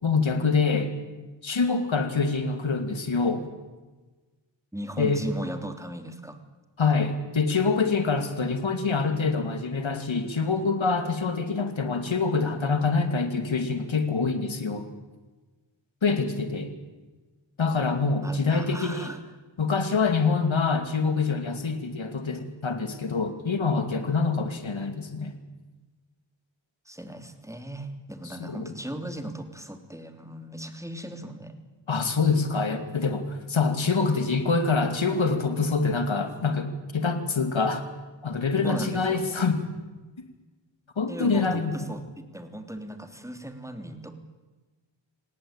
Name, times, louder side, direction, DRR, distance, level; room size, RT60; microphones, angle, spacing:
voice 1, 0.0-0.9 1.4-3.5 5.0-5.2 6.8-14.8 16.0-16.7 17.6-19.1 19.6-25.3 28.4-28.7 31.9-37.8 38.2-39.6 41.0-41.9, left 4 dB, 85° left, 8 dB, 2.6 m, -25 dB
voice 2, 4.7-6.4 18.2-19.2 26.8-31.5 38.6-39.2 41.1-42.0 42.3-44.1, right 1 dB, 5° right, 7 dB, 3.2 m, -37 dB
26.5 x 18.5 x 9.0 m, 1.2 s
wide cardioid pair, 60°, 45 cm